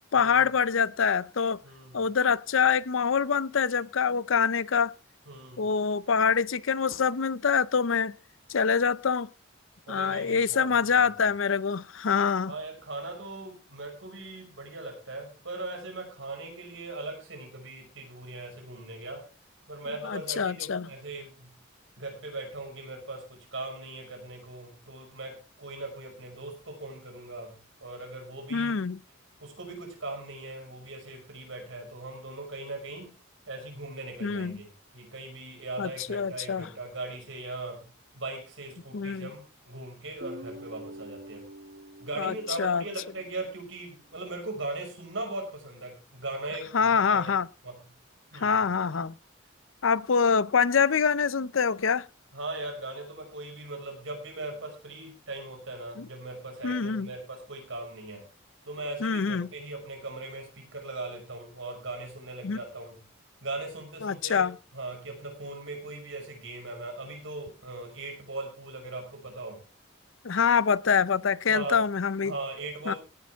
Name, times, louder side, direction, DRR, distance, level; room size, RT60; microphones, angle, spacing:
voice 1, 0.1-1.6 1.9-4.9 5.6-8.1 8.5-9.3 9.9-12.5 20.0-20.9 28.5-29.0 34.2-34.6 35.8-36.7 38.9-39.3 42.2-42.8 46.7-47.5 48.3-49.1 49.8-52.0 56.0-56.1 56.6-57.1 59.0-59.5 62.4-62.6 64.0-64.6 70.2-72.3 72.9-73.0, left 6 dB, 75° left, 0.6 m, -25 dB
voice 2, 1.6-2.0 5.3-5.6 9.9-10.7 11.0-11.1 12.5-19.2 19.7-21.5 22.0-28.7 29.4-33.1 33.5-34.7 34.9-37.8 38.1-41.4 42.0-47.4 47.6-47.8 48.3-48.6 52.3-58.2 58.6-63.0 63.4-64.4 64.7-69.6 71.5-71.8 72.2-73.0, right 2 dB, 70° right, 5.7 m, -39 dB
Guitar, 40.2-43.5, equal, 50° right, 1.2 m, -45 dB
17.0 x 10.5 x 3.5 m
head